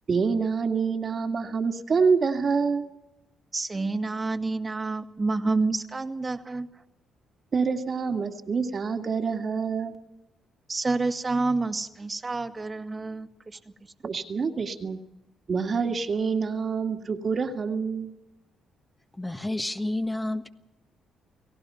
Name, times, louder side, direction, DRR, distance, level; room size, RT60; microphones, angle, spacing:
voice 1, 0.1-2.9 7.5-10.0 14.0-15.0 15.5-18.1, right 5 dB, 45° right, 2.1 m, -26 dB
voice 2, 3.5-6.7 10.7-13.6, right 3 dB, 25° right, 1.9 m, -28 dB
voice 3, 19.2-20.5, left 1 dB, 10° left, 1.4 m, -30 dB
29.5 x 18.0 x 5.7 m
cardioid pair, 90°, 0 cm